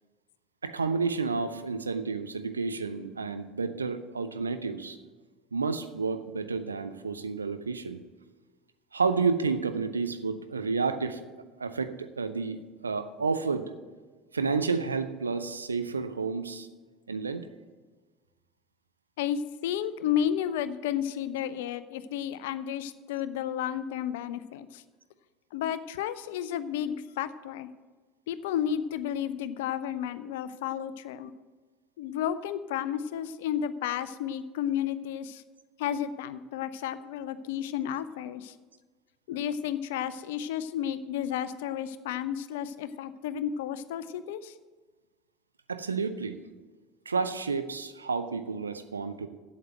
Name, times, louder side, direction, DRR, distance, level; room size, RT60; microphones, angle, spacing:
voice 1, 0.6-5.0 5.5-8.0 8.9-11.3 11.6-13.7 14.3-16.7 17.1-17.5 45.7-46.4 47.1-49.3, right 4 dB, 80° right, 10 dB, 0.6 m, -30 dB
voice 2, 19.2-24.8 25.5-27.7 28.3-31.3 32.0-35.4 35.8-38.5 39.3-44.5, left 9 dB, 65° left, 14 dB, 0.5 m, -32 dB
8.1 x 7.6 x 7.7 m, 1.3 s
figure-of-eight pair, 65°, 0 cm